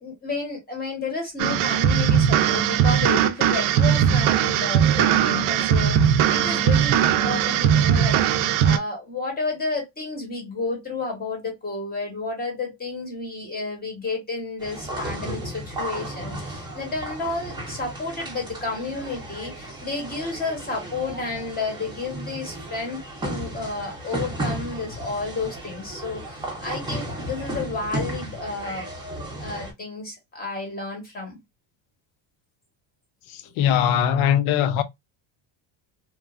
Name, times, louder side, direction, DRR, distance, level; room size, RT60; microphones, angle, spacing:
voice 1, 0.0-8.2 8.6-28.9 29.4-31.4, left 3 dB, 20° left, 0.9 m, -31 dB
sound 1, 1.4-8.8, right 9 dB, 75° right, 0.6 m, -19 dB
sound 2, 14.6-29.7, right 1 dB, 10° right, 0.6 m, -34 dB
voice 2, 33.6-34.8, left 9 dB, 70° left, 0.6 m, -20 dB
2.9 x 2.2 x 2.3 m
cardioid pair, 170°, 49 cm